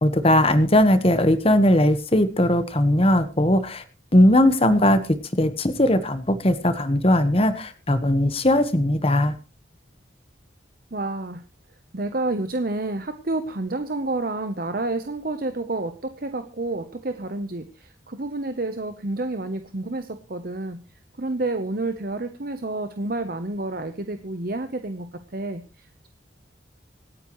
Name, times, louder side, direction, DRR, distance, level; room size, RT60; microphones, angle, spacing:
voice 1, 0.0-3.8 4.1-5.0 5.4-9.3, left 1 dB, 30° left, 10 dB, 1.3 m, -19 dB
voice 2, 10.9-11.4 11.9-20.8 21.2-26.1, right 2 dB, 50° right, 9 dB, 0.9 m, -29 dB
26.0 x 9.3 x 3.1 m, 0.31 s
head